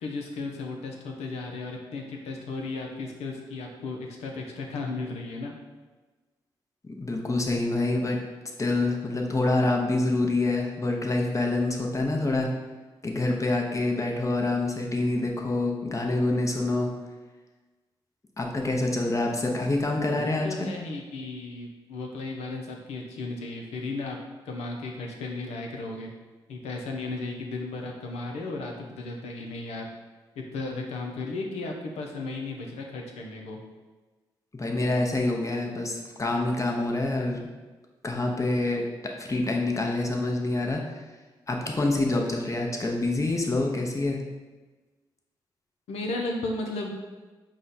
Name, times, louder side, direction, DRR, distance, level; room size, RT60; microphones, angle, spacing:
voice 1, 0.0-5.5 20.0-24.2 24.5-26.1 26.5-29.9 30.5-33.6 45.9-47.0, left 3 dB, 80° left, 2 dB, 0.7 m, -35 dB
voice 2, 6.8-8.2 8.6-12.5 13.0-16.9 18.4-20.7 34.5-37.5 38.0-41.0 41.5-44.2, left 2 dB, 30° left, 1 dB, 0.9 m, -26 dB
4.9 x 2.3 x 4.1 m, 1.3 s
supercardioid pair, 45°, 11 cm